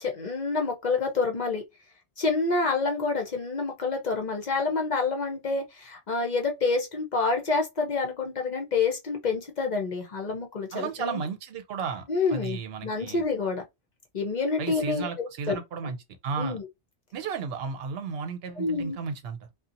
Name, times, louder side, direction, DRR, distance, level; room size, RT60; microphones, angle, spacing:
voice 1, 0.0-1.6 2.2-11.3 12.1-13.6 14.1-15.6 15.8-15.9 16.4-16.7 18.6-19.0, left 4 dB, 50° left, 0.7 m, -28 dB
voice 2, 10.7-12.0 12.3-13.2 14.6-16.0 16.2-16.6 17.1-19.4, right 5 dB, 65° right, 0.8 m, -33 dB
2.7 x 2.2 x 2.5 m
omnidirectional pair, 1.2 m